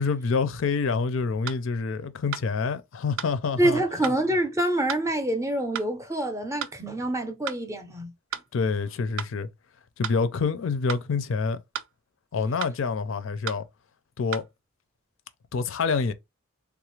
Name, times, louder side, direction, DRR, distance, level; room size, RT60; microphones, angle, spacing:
voice 1, 0.0-3.8 8.5-9.5 10.0-11.6 12.3-13.7 14.2-14.4 15.5-16.1, left 4 dB, 65° left, 0.4 m, -27 dB
sound 1, 1.5-1.6 2.3-2.5 3.2-3.3 4.0-4.2 4.9-5.1 5.7-5.9 6.6-6.8 7.5-7.6 8.3-8.5 9.2-9.3 10.0-10.2 10.9-11.1 11.7-11.9 12.6-12.8 13.5-13.6 14.3-14.5, right 9 dB, 65° right, 0.4 m, -34 dB
voice 2, 3.6-8.1, right 1 dB, 15° right, 0.6 m, -26 dB
3.5 x 2.4 x 3.1 m
head